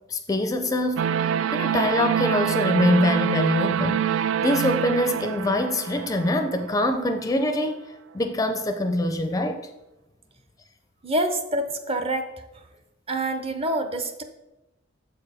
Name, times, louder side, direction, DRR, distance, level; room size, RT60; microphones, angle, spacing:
voice 1, 0.1-7.8 8.1-9.7, left 1 dB, 20° left, 7 dB, 0.4 m, -24 dB
sound 1, 1.0-7.0, right 8 dB, 75° right, 0.3 m, -26 dB
voice 2, 11.0-12.3 13.1-14.2, right 1 dB, 30° right, 8 dB, 0.6 m, -26 dB
7.0 x 4.7 x 4.8 m, 0.97 s
head